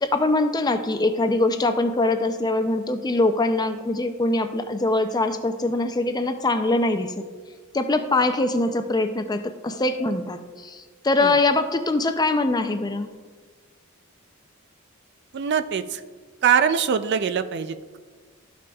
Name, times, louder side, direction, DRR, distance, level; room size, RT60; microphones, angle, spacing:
voice 1, 0.0-7.3 7.7-13.1, left 2 dB, 20° left, 8 dB, 0.4 m, -23 dB
voice 2, 15.3-16.0 16.4-18.0, right 7 dB, 55° right, 11 dB, 0.4 m, -23 dB
13.5 x 6.0 x 2.3 m, 1.5 s
head